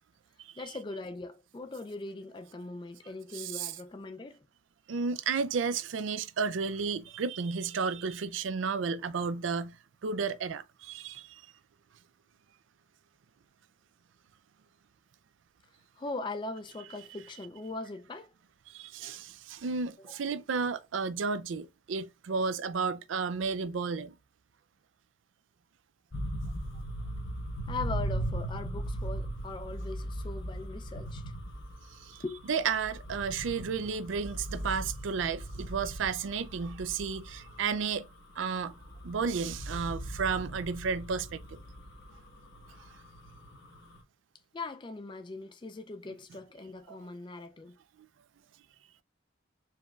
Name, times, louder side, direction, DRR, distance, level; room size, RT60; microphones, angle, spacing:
voice 1, 0.6-4.5 15.9-18.3 20.1-20.2 27.6-31.3 32.2-32.4 44.5-47.8, left 3 dB, 25° left, 0.3 m, -40 dB
voice 2, 3.3-3.7 4.9-9.8 10.0-11.4 18.7-24.1 32.0-32.2 32.5-38.1 38.4-38.7 39.0-41.6 46.9-47.0, right 5 dB, 85° right, 0.4 m, -32 dB
sound 1, 26.1-44.0, right 1 dB, 65° left, 1.0 m, -39 dB
4.6 x 3.1 x 2.3 m
head